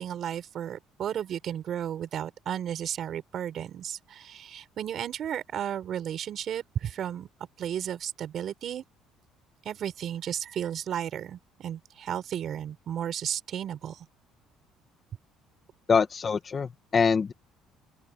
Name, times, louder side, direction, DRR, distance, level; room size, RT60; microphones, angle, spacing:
voice 1, 0.0-7.3 7.6-8.8 9.6-14.1, right 9 dB, 45° right, 4.9 m, -34 dB
voice 2, 15.9-17.3, left 5 dB, 30° left, 1.5 m, -24 dB
open air
cardioid pair, 140°, 0 cm